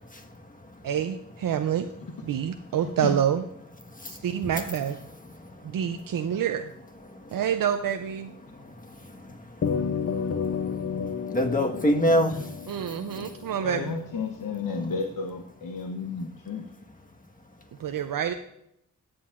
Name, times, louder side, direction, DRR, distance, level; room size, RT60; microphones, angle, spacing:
voice 1, 0.8-1.9 2.2-3.5 4.1-5.0 5.6-6.7 7.3-8.3 12.7-14.0 17.8-18.3, right 9 dB, 75° right, 0.6 m, -27 dB
voice 2, 3.9-4.5 5.4-5.8 7.1-7.3 8.5-12.6 14.7-14.9, equal, 25° left, 1.4 m, -29 dB
sound 1, 9.6-14.2, left 6 dB, 45° left, 0.6 m, -31 dB
voice 3, 13.6-16.6, left 4 dB, 70° left, 0.9 m, -32 dB
14.5 x 7.6 x 2.5 m
cardioid pair, 45°, 34 cm